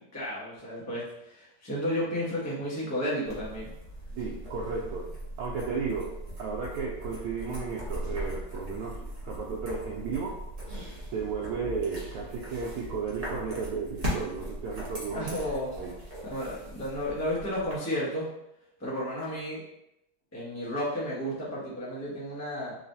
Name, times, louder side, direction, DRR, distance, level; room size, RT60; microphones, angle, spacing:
voice 1, 0.0-3.7 5.7-5.8 15.1-15.7 16.2-18.3 18.8-19.6 20.3-22.8, equal, 15° left, -7 dB, 0.5 m, -32 dB
sound 1, 3.2-17.8, equal, 55° right, 0.4 m, -39 dB
voice 2, 4.2-5.1 5.4-10.4 11.1-15.4 15.8-16.0, right 5 dB, 85° right, -3 dB, 1.5 m, -34 dB
4.1 x 3.0 x 2.6 m, 0.83 s
omnidirectional pair, 2.3 m